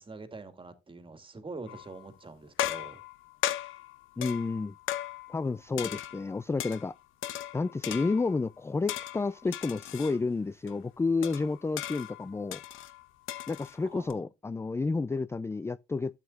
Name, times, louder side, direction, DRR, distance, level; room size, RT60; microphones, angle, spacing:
voice 1, 0.0-3.0 13.9-14.3, right 3 dB, 25° right, 2.1 m, -45 dB
sound 1, 1.7-2.1 2.6-5.5 5.8-6.9 7.2-8.4 8.9-10.2 10.7-10.8 11.2-14.1, left 13 dB, 85° left, 1.0 m, -37 dB
voice 2, 4.2-4.8 5.3-6.9 7.5-12.6 13.5-16.2, left 3 dB, 15° left, 0.4 m, -30 dB
12.0 x 8.3 x 2.5 m
cardioid pair, 90°, 20 cm